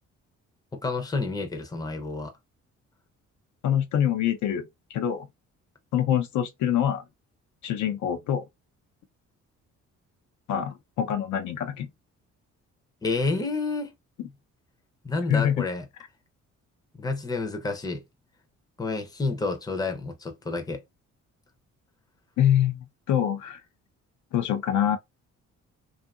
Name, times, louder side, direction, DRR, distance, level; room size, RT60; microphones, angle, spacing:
voice 1, 0.7-2.3 13.0-13.9 14.2-14.3 15.0-15.9 16.9-18.0 18.8-20.8, left 3 dB, 15° left, 0.6 m, -29 dB
voice 2, 3.6-5.3 5.9-7.0 7.6-8.4 10.5-11.9 15.3-15.7 22.4-23.6 24.3-25.0, left 10 dB, 70° left, 0.5 m, -25 dB
2.7 x 2.4 x 2.3 m
cardioid pair, 90°, 30 cm